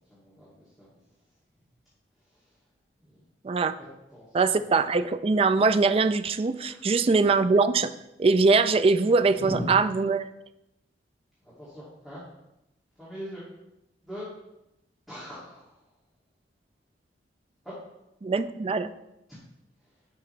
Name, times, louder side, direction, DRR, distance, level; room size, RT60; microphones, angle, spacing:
voice 1, 0.1-1.0 2.3-2.5 3.0-3.2 3.8-4.8 6.6-7.0 9.3-9.8 11.4-12.2 13.0-13.4 14.0-14.3 15.1-15.8 17.6-17.7, equal, ahead, -10 dB, 2.3 m, -40 dB
voice 2, 4.3-7.9 8.2-10.2 18.2-18.9, right 4 dB, 30° right, 11 dB, 0.3 m, -22 dB
10.5 x 5.8 x 3.2 m, 0.89 s
head